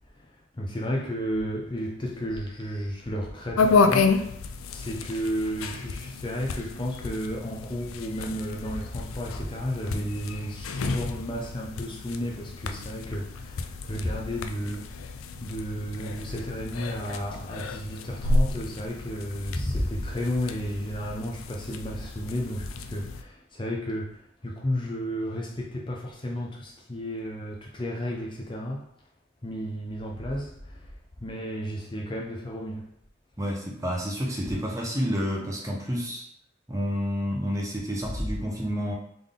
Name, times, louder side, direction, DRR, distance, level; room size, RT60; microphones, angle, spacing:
voice 1, 0.1-4.4 4.7-28.9 29.4-30.9 31.2-32.9, equal, 25° left, -1 dB, 0.5 m, -32 dB
sound 1, 3.6-23.2, left 3 dB, 80° left, 0.4 m, -30 dB
voice 2, 33.4-36.2 36.7-38.9, equal, 15° right, -1 dB, 0.7 m, -29 dB
3.7 x 3.5 x 3.7 m, 0.71 s
head